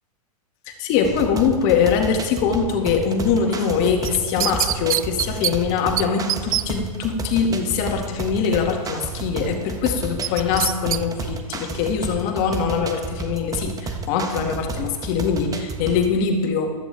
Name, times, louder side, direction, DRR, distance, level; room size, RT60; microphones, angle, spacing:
voice 1, 0.7-16.7, left 6 dB, 40° left, 3 dB, 2.0 m, -22 dB
sound 1, 1.0-16.2, right 3 dB, 20° right, 1.3 m, -31 dB
sound 2, 4.0-5.5 6.0-6.1 6.3-6.6 10.2-11.0 11.4-11.5, right 12 dB, 65° right, 0.5 m, -23 dB
15.0 x 13.5 x 3.5 m, 1.4 s
figure-of-eight pair, 100°, 20 cm